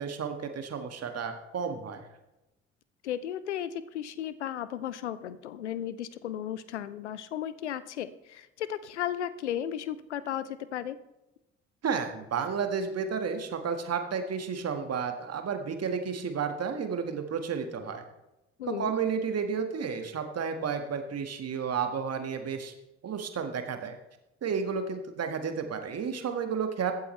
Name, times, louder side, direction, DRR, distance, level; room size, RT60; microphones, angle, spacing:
voice 1, 0.0-2.0 11.8-18.0 18.7-22.7 23.0-24.0 24.4-26.9, right 6 dB, 45° right, 6 dB, 1.7 m, -32 dB
voice 2, 3.0-11.0 18.6-18.9, left 10 dB, 85° left, 16 dB, 0.5 m, -35 dB
23.0 x 8.2 x 3.2 m, 0.95 s
figure-of-eight pair, 45°, 33 cm